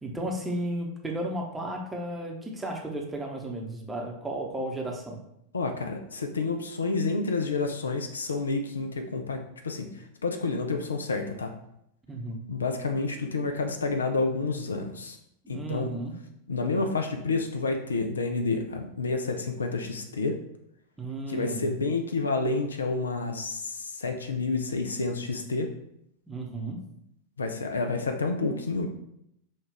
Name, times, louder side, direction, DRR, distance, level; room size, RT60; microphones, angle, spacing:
voice 1, 0.0-5.2 12.1-12.4 15.4-16.1 21.0-21.7 26.3-26.8, right 1 dB, 10° right, 0 dB, 0.8 m, -34 dB
voice 2, 5.5-11.5 12.5-15.2 15.5-15.9 16.5-20.4 21.3-25.7 27.4-28.9, left 3 dB, 70° left, 5 dB, 0.4 m, -29 dB
5.2 x 2.4 x 3.3 m, 0.77 s
figure-of-eight pair, 90°, 0 cm